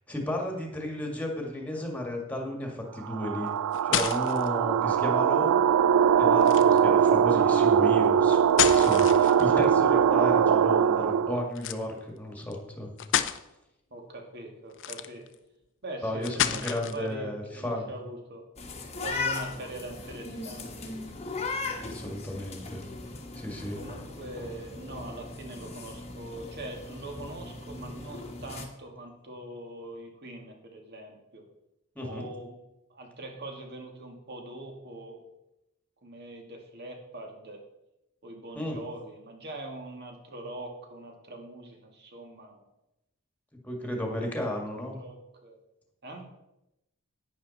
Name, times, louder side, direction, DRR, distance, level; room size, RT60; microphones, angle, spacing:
voice 1, 0.1-3.5 3.8-5.6 6.2-8.4 8.7-12.9 16.0-17.9 21.8-22.8 23.3-23.8 32.0-32.2 38.6-38.8 43.6-45.0, left 1 dB, 5° left, 1 dB, 1.9 m, -33 dB
sound 1, 3.1-11.5, right 8 dB, 75° right, 0.3 m, -22 dB
sound 2, 3.5-4.5 6.4-6.9 8.3-9.6 11.6-11.8 12.5-12.6 13.0-13.4 14.7-15.3 16.2-17.1, left 10 dB, 60° left, 0.6 m, -29 dB
voice 2, 13.9-15.3 15.8-18.5 19.0-21.2 23.7-31.5 32.0-32.6 32.9-35.2 36.0-37.6 38.2-42.7 43.8-44.5 44.9-45.6 46.0-46.2, right 1 dB, 50° right, 2 dB, 2.1 m, -42 dB
sound 3, 18.6-28.7, left 3 dB, 30° left, 1.3 m, -38 dB
11.0 x 9.4 x 4.1 m, 0.89 s
head